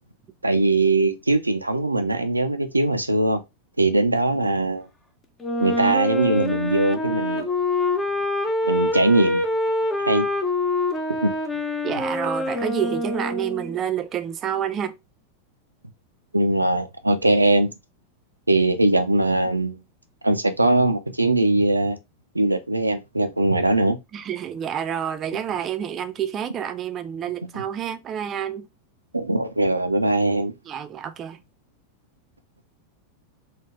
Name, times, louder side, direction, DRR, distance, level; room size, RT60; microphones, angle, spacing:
voice 1, 0.4-3.4 3.8-4.9 5.6-7.5 8.6-9.4 10.0-10.3 11.2-11.3 16.3-17.7 18.5-19.8 20.2-22.0 22.3-24.0 29.1-30.5, right 2 dB, 85° right, 0.4 m, -21 dB
Wind instrument woodwind instrument, 5.4-13.8, left 2 dB, 15° left, 0.6 m, -25 dB
voice 2, 11.8-15.0 24.1-28.7 30.6-31.4, right 9 dB, 30° right, 0.4 m, -28 dB
3.9 x 2.2 x 2.9 m
figure-of-eight pair, 90°, 0 cm